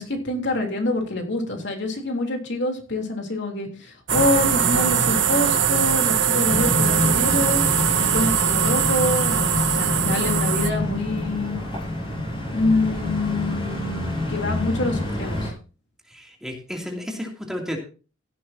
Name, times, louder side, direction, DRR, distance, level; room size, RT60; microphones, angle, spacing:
voice 1, 0.0-7.6 8.0-11.6 12.5-15.5, left 2 dB, 65° left, 3 dB, 3.3 m, -26 dB
sound 1, 4.1-10.7, right 8 dB, 65° right, 1.1 m, -21 dB
sound 2, 6.5-15.5, left 1 dB, 25° left, 7.5 m, -27 dB
voice 2, 9.8-10.2 16.1-17.8, equal, 5° right, 0 dB, 2.7 m, -33 dB
16.5 x 12.0 x 2.8 m, 0.35 s
head